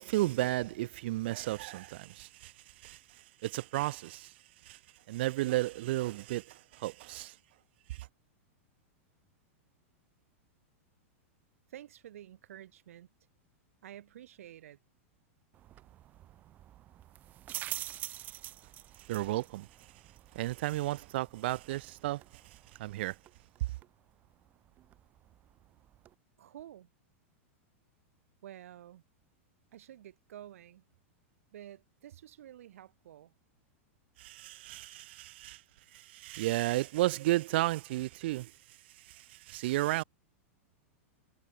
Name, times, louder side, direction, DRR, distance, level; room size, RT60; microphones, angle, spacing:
voice 1, 0.0-2.5 2.8-3.0 3.4-4.3 4.7-4.8 5.1-7.3 7.9-8.0 19.1-19.7 20.3-22.2 22.8-23.2 34.2-35.6 35.9-38.5 39.1-40.0, right 17 dB, 50° right, 0.4 m, -33 dB
voice 2, 11.7-13.1 13.8-14.8 26.4-26.9 28.4-29.0 29.7-30.8 31.5-33.3, right 11 dB, 85° right, 1.0 m, -50 dB
sound 1, 15.5-26.1, right 13 dB, 20° right, 1.1 m, -47 dB
supercardioid pair, 170°, 7 cm